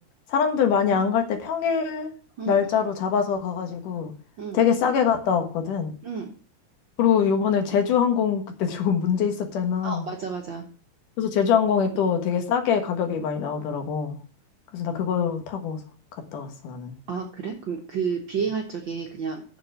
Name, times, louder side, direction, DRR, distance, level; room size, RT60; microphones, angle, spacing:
voice 1, 0.3-2.1 2.5-4.1 4.5-6.0 7.0-10.1 11.2-14.2 14.7-15.8 16.3-16.9, left 7 dB, 80° left, 5 dB, 3.1 m, -24 dB
voice 2, 9.8-10.7 17.1-19.4, right 6 dB, 60° right, 1 dB, 1.2 m, -31 dB
7.1 x 7.0 x 7.8 m, 0.41 s
omnidirectional pair, 3.7 m